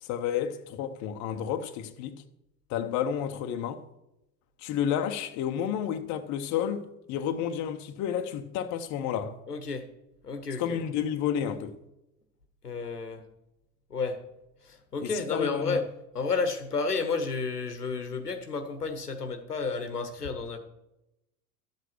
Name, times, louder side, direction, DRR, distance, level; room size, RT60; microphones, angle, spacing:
voice 1, 0.0-2.2 2.7-3.8 4.6-9.4 10.6-11.8 15.0-15.8, left 9 dB, 40° left, 0.9 m, -31 dB
voice 2, 9.5-9.9 10.2-10.8 12.6-13.2 13.9-14.2 14.6-15.9 16.1-20.6, left 4 dB, 85° left, 1.1 m, -31 dB
12.5 x 8.0 x 4.5 m
figure-of-eight pair, 75°, 45 cm